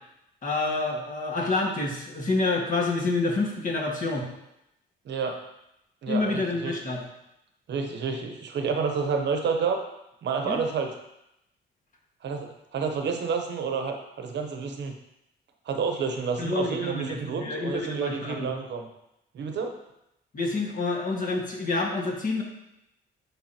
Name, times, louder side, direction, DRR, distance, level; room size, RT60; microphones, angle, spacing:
voice 1, 0.4-4.2 6.1-7.0 10.5-10.6 16.4-18.5 20.3-22.4, left 3 dB, 40° left, -2 dB, 1.7 m, -28 dB
voice 2, 5.0-5.4 6.0-6.7 7.7-9.8 10.2-10.9 12.2-15.0 15.7-18.9 19.3-19.8, right 5 dB, 60° right, 5 dB, 0.9 m, -29 dB
10.0 x 3.6 x 2.9 m, 0.84 s
cardioid pair, 90°, 20 cm